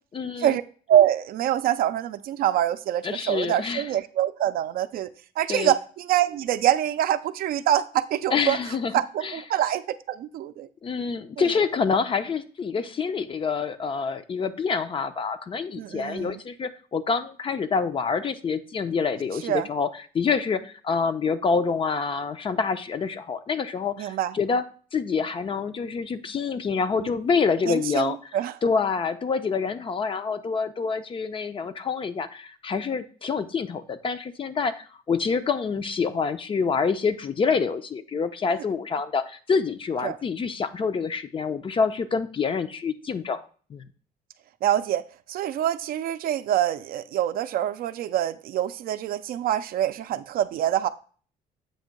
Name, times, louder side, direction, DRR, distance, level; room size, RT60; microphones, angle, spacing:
voice 1, 0.1-0.6 3.0-3.9 5.5-5.8 8.3-8.9 9.2-9.4 10.8-24.6 24.9-28.2 28.6-43.4 43.7-43.9, left 5 dB, 30° left, 0.5 m, -27 dB
voice 2, 0.9-5.1 5.4-8.6 8.9-10.7 11.4-11.5 15.8-16.4 19.4-19.7 24.0-24.3 27.0-27.1 27.6-28.6 40.0-40.2 44.6-45.0 45.3-50.9, right 11 dB, 60° right, 0.4 m, -25 dB
7.7 x 2.7 x 5.2 m
cardioid pair, 110°, 17 cm